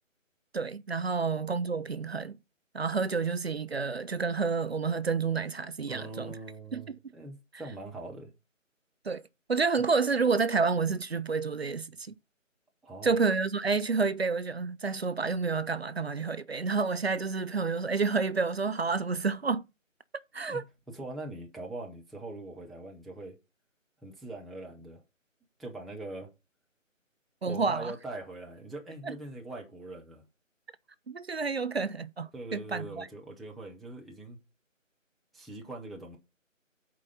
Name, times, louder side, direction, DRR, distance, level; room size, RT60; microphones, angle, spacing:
voice 1, 0.5-2.4 2.7-6.4 6.7-7.0 9.0-9.2 9.5-12.1 13.0-19.6 20.3-20.6 27.4-27.9 29.0-29.1 31.1-33.1, right 4 dB, 50° right, 0.6 m, -29 dB
voice 2, 5.9-8.3 12.8-13.1 20.5-20.6 20.9-23.4 24.0-25.0 25.6-26.3 27.4-30.2 32.3-34.4 35.3-36.2, right 2 dB, ahead, 0.5 m, -42 dB
7.3 x 4.7 x 5.5 m
figure-of-eight pair, 165°, 39 cm